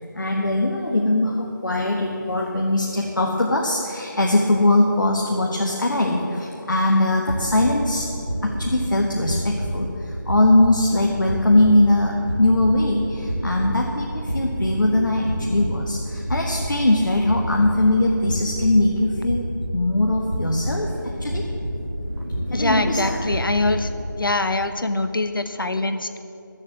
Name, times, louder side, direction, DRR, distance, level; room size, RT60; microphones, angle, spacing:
voice 1, 0.1-8.1 8.4-19.4 19.7-20.9 21.2-21.4 22.5-23.2, left 1 dB, 70° left, -1 dB, 1.4 m, -21 dB
sound 1, 7.3-24.2, equal, 35° right, 1.0 m, -29 dB
voice 2, 22.5-23.9 24.2-26.2, left 2 dB, 90° left, 9 dB, 1.0 m, -23 dB
13.5 x 7.3 x 7.8 m, 2.9 s
figure-of-eight pair, 180°, 11 cm